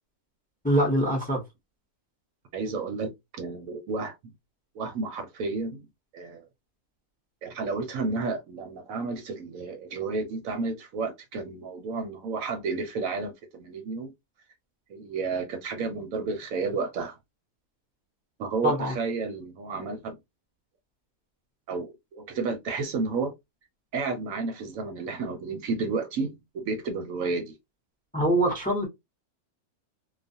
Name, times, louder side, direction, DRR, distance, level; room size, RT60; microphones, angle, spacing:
voice 1, 0.6-1.4 18.6-18.9 28.1-28.9, right 1 dB, 10° left, 0.6 m, -23 dB
voice 2, 2.5-4.3 4.7-5.9 6.1-6.4 7.4-14.1 14.9-17.2 18.4-20.2 21.7-23.3 23.9-27.6, right 4 dB, 70° right, 1.0 m, -31 dB
2.4 x 2.3 x 2.5 m
omnidirectional pair, 1.6 m